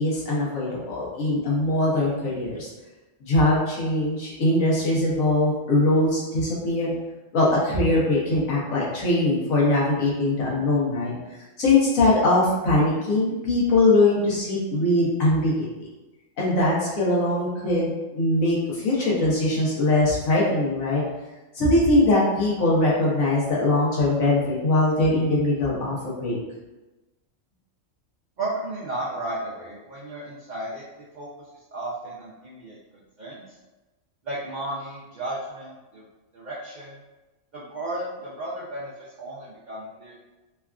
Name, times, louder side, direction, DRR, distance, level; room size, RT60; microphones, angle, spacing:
voice 1, 0.0-2.7 3.2-6.9 7.3-11.1 11.6-15.5 16.4-21.0 21.5-26.4, left 2 dB, 85° left, -6 dB, 1.3 m, -21 dB
voice 2, 28.4-31.3 31.5-32.8 33.2-33.4 34.2-36.0 36.3-37.0 37.5-40.1, right 1 dB, 55° right, -6 dB, 0.5 m, -34 dB
3.3 x 2.3 x 2.3 m, 1.1 s
omnidirectional pair, 1.4 m